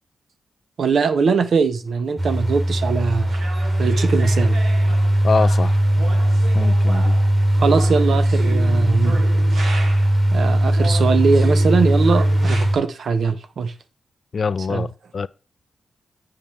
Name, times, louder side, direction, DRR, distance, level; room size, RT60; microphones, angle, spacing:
voice 1, 0.8-3.4 3.8-4.6 7.6-9.2 10.3-13.7 14.7-14.9, right 5 dB, 70° right, 0.8 m, -21 dB
sound 1, 2.2-12.8, right 1 dB, 25° right, 1.7 m, -18 dB
sound 2, 3.3-10.2 10.7-12.7, right 3 dB, 85° right, 2.3 m, -35 dB
voice 2, 5.2-5.8 6.5-7.2 14.3-14.9 15.1-15.3, left 5 dB, 55° left, 0.4 m, -23 dB
8.5 x 5.2 x 4.4 m
cardioid pair, 65°, 0 cm